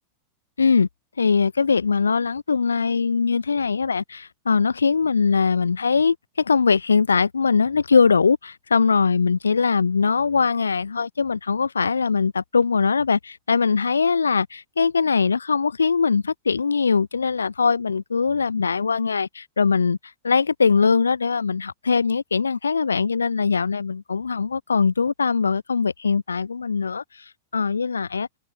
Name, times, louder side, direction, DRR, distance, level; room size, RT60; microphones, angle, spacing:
voice 1, 0.6-0.9 1.2-20.0 20.2-27.0 27.5-28.3, left 5 dB, 75° left, 6.8 m, -21 dB
figure-of-eight pair, 90°, 0 cm